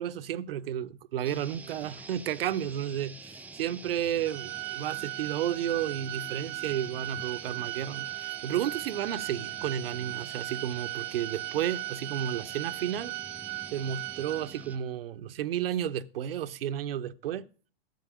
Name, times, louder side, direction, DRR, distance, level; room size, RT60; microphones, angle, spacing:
voice 1, 0.0-13.1 13.7-17.5, right 10 dB, 65° right, 0.9 m, -32 dB
sound 1, 1.2-15.0, right 3 dB, 5° right, 0.6 m, -47 dB
Organ, 4.2-14.9, right 22 dB, 45° right, 0.5 m, -38 dB
13.5 x 7.8 x 6.2 m
hypercardioid pair, 105°, 31 cm